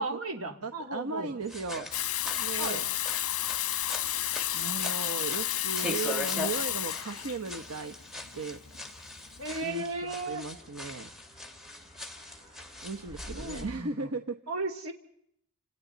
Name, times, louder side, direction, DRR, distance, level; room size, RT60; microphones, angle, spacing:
voice 1, 0.0-1.3 2.6-2.9 9.4-10.4 13.3-14.1 14.5-14.9, right 2 dB, 65° right, 4 dB, 2.8 m, -35 dB
voice 2, 0.6-1.9 2.4-2.8 4.5-7.9 8.3-8.6 9.6-11.1 12.8-14.4, right 4 dB, 85° right, 6 dB, 1.1 m, -36 dB
sound 1, 1.4-13.7, left 2 dB, ahead, 2.2 m, -41 dB
Water tap faucet / Sink (filling or washing), 1.9-9.6, left 13 dB, 70° left, 1.1 m, -32 dB
sound 2, 9.2-13.7, right 1 dB, 20° right, 6.1 m, -51 dB
29.5 x 26.5 x 4.1 m, 0.72 s
head